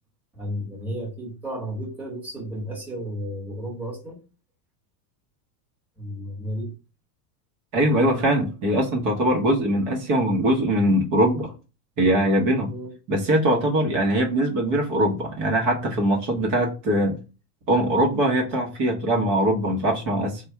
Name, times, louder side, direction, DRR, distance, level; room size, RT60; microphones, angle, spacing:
voice 1, 0.3-4.2 6.0-6.7 12.7-12.9, equal, 5° right, -3 dB, 1.1 m, -33 dB
voice 2, 7.7-11.5 12.0-12.7 13.1-17.2 17.7-20.4, right 1 dB, 40° right, 1 dB, 1.0 m, -22 dB
3.4 x 2.4 x 4.2 m, 0.32 s
supercardioid pair, 135°, 49 cm